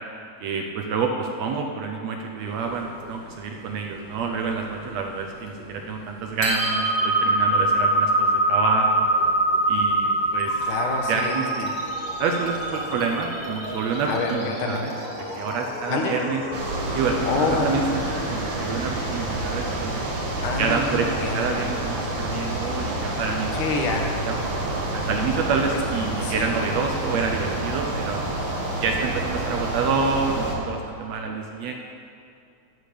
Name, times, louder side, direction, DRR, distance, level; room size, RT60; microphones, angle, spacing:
voice 1, 0.4-9.1 9.7-10.6 11.1-11.7 12.2-16.4 16.9-18.0 18.3-20.1 20.6-23.5 23.9-28.2 28.8-31.7, right 5 dB, 75° right, 2 dB, 1.7 m, -28 dB
sound 1, 2.4-4.5 4.7-4.9 5.3-5.8 6.2-14.3, right 1 dB, 35° left, 1.7 m, -24 dB
sound 2, 10.4-21.3, equal, 20° left, 1.4 m, -37 dB
voice 2, 10.6-11.4 14.0-14.9 15.9-16.2 17.2-17.8 20.4-21.4 23.5-24.2 26.2-26.6, left 3 dB, 85° left, 2 dB, 2.7 m, -27 dB
sound 3, 16.5-30.6, right 1 dB, 50° right, 1.7 m, -28 dB
12.0 x 5.1 x 8.4 m, 2.4 s
omnidirectional pair, 3.5 m